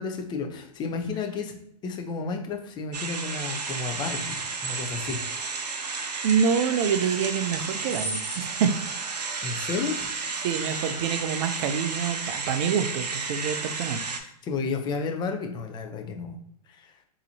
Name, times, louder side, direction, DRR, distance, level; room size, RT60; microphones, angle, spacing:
voice 1, 0.0-1.6 1.8-5.2 9.4-10.1 14.2-16.4 16.7-17.0, left 4 dB, 20° left, 4 dB, 0.6 m, -32 dB
sound 1, 2.9-14.2, right 4 dB, 90° right, 0.6 m, -32 dB
voice 2, 6.2-8.7 10.4-14.0, right 7 dB, 45° right, 10 dB, 0.5 m, -26 dB
4.0 x 2.8 x 2.7 m, 0.73 s
hypercardioid pair, 120°, 20 cm